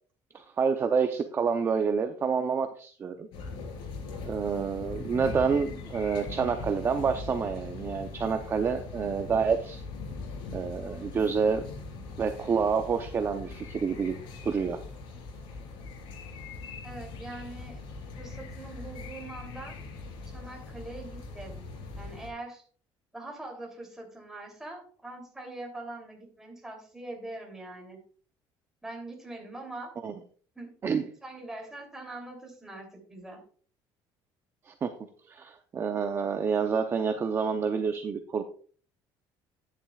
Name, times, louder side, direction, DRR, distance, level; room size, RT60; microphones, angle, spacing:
voice 1, 0.3-3.3 4.2-9.8 10.5-11.6 12.2-14.2 14.4-14.8 30.0-30.1 30.8-31.0 34.7-34.9 35.3-38.4, right 6 dB, 25° right, 7 dB, 0.7 m, -28 dB
sound 1, 3.3-22.3, left 3 dB, 70° left, 4.1 m, -41 dB
voice 2, 16.8-17.8 18.2-19.8 20.3-21.6 21.9-22.6 23.1-28.0 28.8-29.9 30.5-30.7 31.2-33.4, right 2 dB, 5° right, 0 dB, 3.0 m, -42 dB
11.5 x 10.0 x 2.4 m, 0.43 s
cardioid pair, 160°, 9 cm